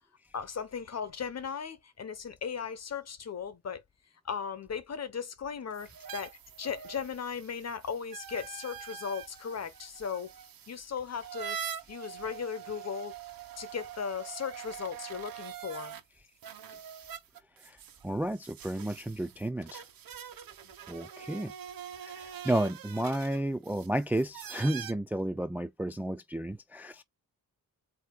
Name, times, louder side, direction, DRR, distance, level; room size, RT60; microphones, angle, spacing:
voice 1, 0.3-3.8 4.2-10.3 10.7-11.6 11.9-13.1 13.6-16.0, left 6 dB, 50° left, 1.1 m, -37 dB
sound 1, 5.7-16.0 16.4-24.9, right 8 dB, 85° right, 1.2 m, -44 dB
voice 2, 18.0-19.8 20.9-21.5 22.0-27.0, right 1 dB, 5° right, 0.3 m, -32 dB
7.9 x 2.9 x 2.3 m
wide cardioid pair, 120°, 34 cm